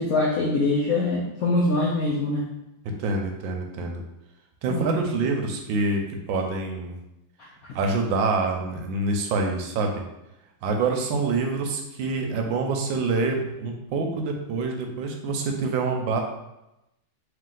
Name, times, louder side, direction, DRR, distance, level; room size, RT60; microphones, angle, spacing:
voice 1, 0.0-2.4 4.7-5.0, left 2 dB, 75° left, -3 dB, 0.8 m, -23 dB
voice 2, 2.8-4.0 4.6-6.0 6.3-7.0 7.7-10.0 10.6-16.2, right 3 dB, 75° right, 3 dB, 1.3 m, -26 dB
3.3 x 3.1 x 3.8 m, 0.90 s
omnidirectional pair, 2.1 m